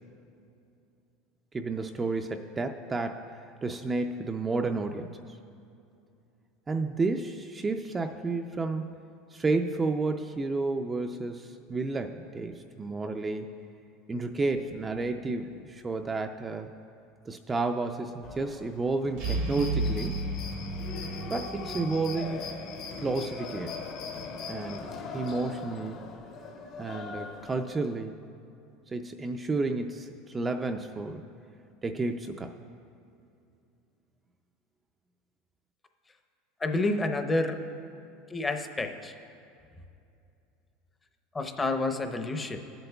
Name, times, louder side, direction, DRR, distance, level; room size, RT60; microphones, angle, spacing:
voice 1, 1.5-5.2 6.7-8.9 9.3-13.5 14.1-16.7 17.3-20.2 21.3-22.5 23.0-23.8 24.5-24.9 25.1-26.0 26.8-28.1 28.9-31.3 31.8-32.5, right 3 dB, 20° right, 5 dB, 0.4 m, -31 dB
sound 1, 14.6-15.1 19.1-23.2, right 2 dB, 65° right, 0.8 m, -34 dB
sound 2, 18.2-27.8, left 4 dB, 45° left, 0.8 m, -42 dB
sound 3, 19.2-24.8, left 5 dB, 65° left, 1.5 m, -44 dB
voice 2, 36.6-37.6 38.3-39.1 41.3-42.6, left 2 dB, 15° left, 6 dB, 0.7 m, -29 dB
18.5 x 7.9 x 2.3 m, 2.6 s
supercardioid pair, 120°, 0 cm